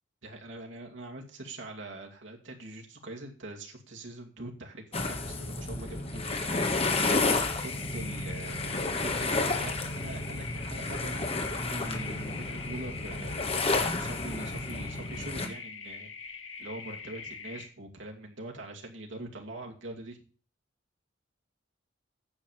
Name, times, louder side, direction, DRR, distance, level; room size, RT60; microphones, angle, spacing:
voice 1, 0.2-6.7 7.5-13.5 14.0-16.1 16.6-20.2, right 1 dB, 75° right, 0 dB, 2.5 m, -43 dB
sound 1, 4.9-15.5, left 3 dB, 30° left, 1.7 m, -31 dB
sound 2, 7.6-17.6, left 5 dB, 80° left, 2.7 m, -43 dB
9.6 x 7.3 x 7.4 m, 0.38 s
head